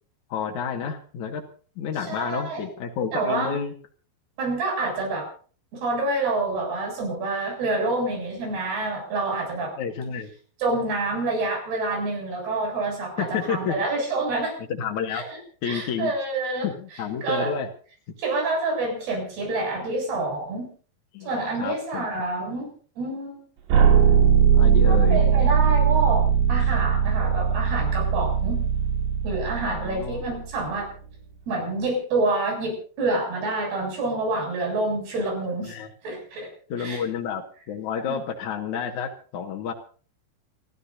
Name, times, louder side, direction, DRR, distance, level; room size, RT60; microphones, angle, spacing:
voice 1, 0.3-1.4 1.8-3.7 9.5-10.3 13.2-13.7 14.7-15.3 15.6-16.1 16.6-17.7 21.1-22.1 24.0-25.2 29.6-30.2 35.7-35.9 36.7-39.7, left 7 dB, 55° left, 1 dB, 2.6 m, -30 dB
voice 2, 2.1-2.6 3.1-3.6 4.4-5.3 5.8-9.8 10.6-14.5 15.1-16.7 17.2-17.5 18.2-20.7 21.2-22.7 23.0-23.4 24.9-26.2 26.5-28.6 29.2-30.9 31.5-35.8 36.0-36.5 36.8-37.0 38.1-38.2, right 2 dB, 65° right, 1 dB, 9.4 m, -27 dB
sound 1, 23.7-30.6, right 7 dB, 90° right, 5.1 m, -20 dB
27.5 x 14.0 x 2.7 m, 0.41 s
omnidirectional pair, 4.9 m